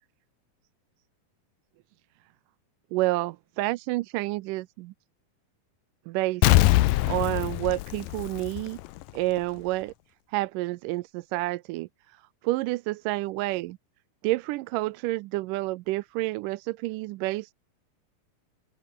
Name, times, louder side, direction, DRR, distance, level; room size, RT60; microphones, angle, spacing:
voice 1, 2.9-4.9 6.1-6.4 6.9-8.8 9.1-9.9 10.3-11.9 12.4-13.8 14.2-17.5, right 19 dB, 80° right, 2.2 m, -29 dB
Explosion, 6.4-9.0 9.4-9.5, left 17 dB, 85° left, 2.5 m, -22 dB
open air
omnidirectional pair, 3.9 m